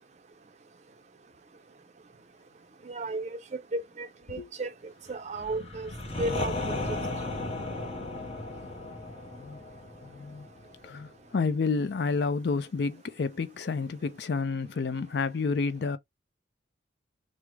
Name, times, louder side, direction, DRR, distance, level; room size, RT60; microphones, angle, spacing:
voice 1, 2.8-3.4 3.7-4.7 5.1-5.9 6.2-7.1, right 2 dB, 35° right, 0.5 m, -34 dB
sound 1, 5.3-11.1, left 2 dB, 30° left, 0.8 m, -35 dB
voice 2, 10.0-10.5 10.8-16.0, left 4 dB, 60° left, 0.4 m, -30 dB
3.4 x 2.0 x 3.1 m
head